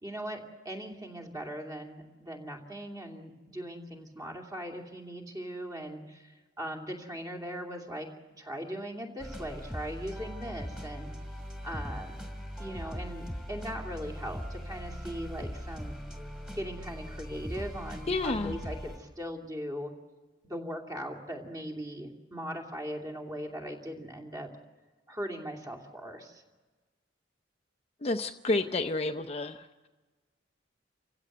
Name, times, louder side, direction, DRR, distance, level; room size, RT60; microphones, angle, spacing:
voice 1, 0.0-8.1 8.4-11.1 11.6-12.2 12.6-16.0 16.5-19.9 20.4-24.5 25.1-26.4, equal, 20° right, 2 dB, 2.7 m, -39 dB
sound 1, 9.2-19.0, equal, 5° right, 2.8 m, -40 dB
voice 2, 18.1-18.6 28.0-29.9, left 2 dB, 35° left, 7 dB, 0.6 m, -30 dB
29.0 x 16.0 x 7.9 m, 1.3 s
head